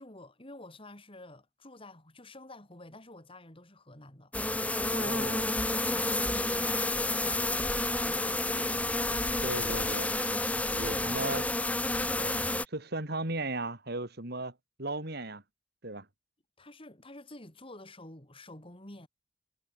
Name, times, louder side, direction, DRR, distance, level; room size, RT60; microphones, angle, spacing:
voice 1, 0.0-4.3 5.7-9.1 10.8-11.4 16.6-19.1, left 2 dB, 30° left, 4.1 m, -50 dB
sound 1, 4.3-12.7, left 2 dB, 5° left, 0.8 m, -30 dB
voice 2, 4.9-5.5 9.4-10.1 10.7-11.4 12.2-14.5 14.8-15.4 15.8-16.1, right 2 dB, 55° right, 3.7 m, -36 dB
head